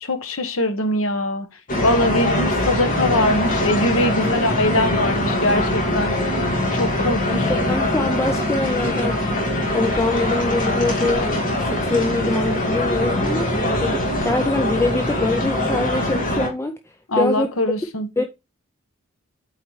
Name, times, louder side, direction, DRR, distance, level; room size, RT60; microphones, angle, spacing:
voice 1, 0.0-1.5 1.8-6.3 6.7-7.9 17.1-18.1, left 1 dB, 70° left, 1.1 m, -22 dB
sound 1, 1.7-16.5, left 1 dB, 40° left, 2.0 m, -22 dB
voice 2, 7.3-9.4 9.7-16.8 17.1-17.5 18.2-18.3, left 2 dB, 15° left, 0.4 m, -24 dB
8.2 x 4.3 x 3.1 m
head